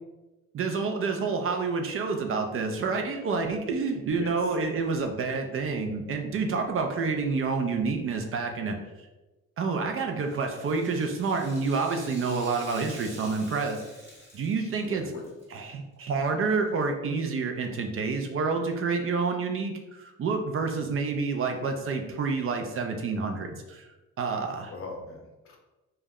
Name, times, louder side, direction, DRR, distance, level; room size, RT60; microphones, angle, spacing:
voice 1, 0.5-8.8 9.6-13.8 14.3-15.0 15.5-23.9 24.2-24.7, right 4 dB, 45° right, 4 dB, 0.4 m, -28 dB
voice 2, 4.1-4.5 14.6-15.3 24.7-25.6, left 3 dB, 45° left, 1 dB, 0.6 m, -41 dB
Rattle (instrument), 10.2-15.4 15.7-15.8 16.7-16.8, equal, 10° right, 1.3 m, -48 dB
2.2 x 2.0 x 3.5 m, 1.1 s
cardioid pair, 90°, 30 cm